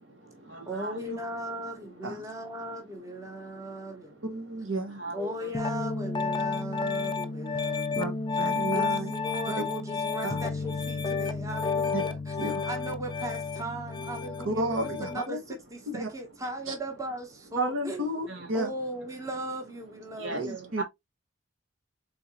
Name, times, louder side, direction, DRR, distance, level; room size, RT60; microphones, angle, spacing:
voice 1, 0.0-1.1 2.2-2.6 3.2-4.3 4.9-5.7 6.4-8.0 8.3-8.7 11.0-11.3 18.3-18.5 20.1-20.8, right 2 dB, 70° right, 2.1 m, -43 dB
voice 2, 0.7-3.9 5.1-7.8 8.7-12.2 12.7-14.6 15.1-15.4 15.9-17.3 17.5-18.1 18.5-20.7, right 1 dB, 15° right, 0.9 m, -37 dB
voice 3, 4.2-5.0 8.0-8.1 8.4-9.1 10.2-10.4 11.9-12.0 12.4-12.7 14.4-15.4 15.9-16.1 16.7-16.8 17.6-18.7 20.3-20.8, right 1 dB, 85° right, 1.0 m, -32 dB
Piano, 5.5-15.2, left 4 dB, 25° left, 0.4 m, -31 dB
4.0 x 3.7 x 2.9 m
head